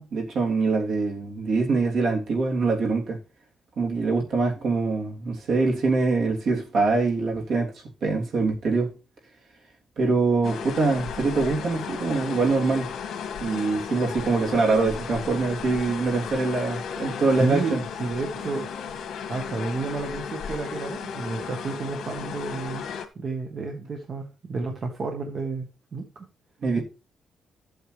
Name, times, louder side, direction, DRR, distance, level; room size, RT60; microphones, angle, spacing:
voice 1, 0.0-3.2 3.8-7.7 8.0-9.0 10.0-12.9 13.4-17.8 26.6-26.8, right 3 dB, 55° right, 3.1 m, -24 dB
sound 1, 10.4-23.1, left 6 dB, 80° left, 1.7 m, -35 dB
voice 2, 17.4-18.7 19.3-22.9 23.1-26.2 26.8-26.9, right 3 dB, 35° right, 1.3 m, -31 dB
13.5 x 8.2 x 3.3 m
cardioid pair, 175°, 0 cm